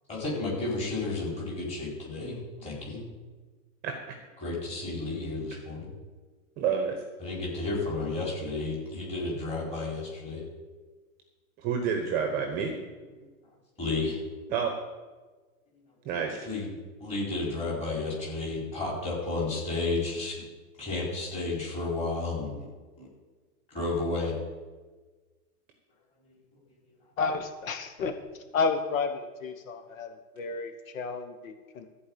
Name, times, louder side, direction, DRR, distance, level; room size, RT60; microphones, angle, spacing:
voice 1, 0.1-3.0 4.4-5.9 7.2-10.4 13.2-13.3 13.8-14.2 16.4-16.7 17.0-20.4 20.8-22.7 23.0-23.1 23.7-24.3, left 3 dB, 15° left, -5 dB, 4.0 m, -32 dB
voice 2, 6.6-7.0 11.6-12.7 14.5-14.7 16.0-16.5, right 6 dB, 20° right, 3 dB, 1.0 m, -28 dB
voice 3, 27.2-28.2 28.5-31.9, left 4 dB, 65° left, 7 dB, 1.2 m, -31 dB
14.0 x 4.8 x 8.5 m, 1.3 s
supercardioid pair, 165°, 44 cm